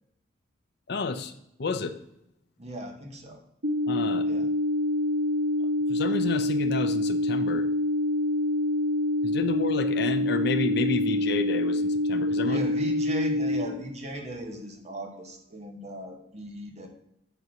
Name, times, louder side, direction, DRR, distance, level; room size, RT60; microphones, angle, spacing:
voice 1, 0.9-1.3 1.6-2.0 3.9-4.3 5.9-7.7 9.2-12.6, left 3 dB, 65° left, 9 dB, 0.6 m, -30 dB
voice 2, 2.6-3.4 4.2-4.5 12.4-16.9, equal, 40° right, 3 dB, 1.2 m, -37 dB
sound 1, 3.6-13.6, left 1 dB, 90° right, 1.3 m, -26 dB
8.0 x 2.8 x 6.0 m, 0.78 s
head